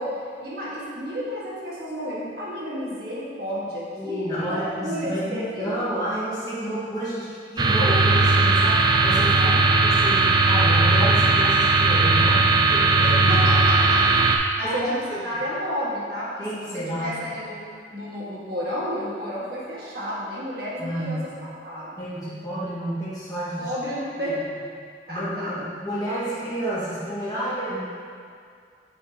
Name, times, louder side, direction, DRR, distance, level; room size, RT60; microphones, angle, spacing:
voice 1, 0.0-6.0 9.2-9.6 13.3-14.3 14.6-17.5 17.9-22.0 23.6-24.4 25.1-25.5, equal, 55° right, -7 dB, 1.6 m, -31 dB
voice 2, 3.9-7.3 7.5-9.5 9.8-13.4 14.6-15.2 16.4-17.2 20.8-21.3 22.0-23.7 25.1-27.8, equal, 20° left, -11 dB, 1.5 m, -30 dB
sound 1, 7.6-14.4, right 3 dB, 20° right, 0.3 m, -18 dB
8.1 x 4.8 x 2.8 m, 2.2 s
head